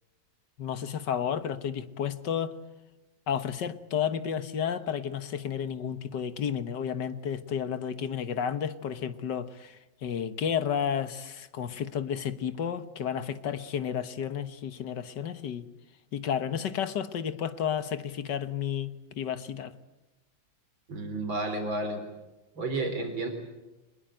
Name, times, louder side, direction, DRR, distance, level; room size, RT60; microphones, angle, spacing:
voice 1, 0.6-2.6 3.3-15.7 16.1-19.7, left 8 dB, 60° left, 1.8 m, -32 dB
voice 2, 20.9-22.0 22.6-23.3, right 2 dB, 70° right, 4.2 m, -31 dB
25.0 x 21.0 x 9.0 m
omnidirectional pair, 2.2 m